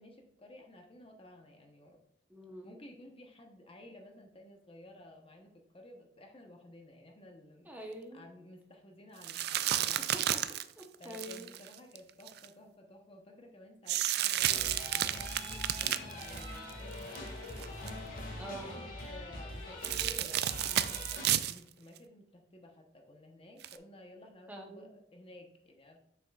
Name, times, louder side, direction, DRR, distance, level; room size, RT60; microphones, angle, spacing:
voice 1, 0.0-2.0 2.6-7.7 8.1-10.2 11.0-17.7 18.6-26.0, left 1 dB, 30° left, 3 dB, 0.9 m, -54 dB
voice 2, 2.3-2.7 7.6-8.3 10.1-10.4 10.8-11.5 18.3-18.8 24.5-24.9, right 1 dB, 10° right, 1 dB, 0.8 m, -45 dB
sound 1, 9.2-12.5 13.9-17.2 17.5-17.9 19.8-21.6 22.0-22.1 23.6-23.8, right 12 dB, 60° right, 0.3 m, -32 dB
sound 2, 14.4-21.3, left 1 dB, 50° left, 1.8 m, -43 dB
7.0 x 6.0 x 2.3 m, 0.79 s
head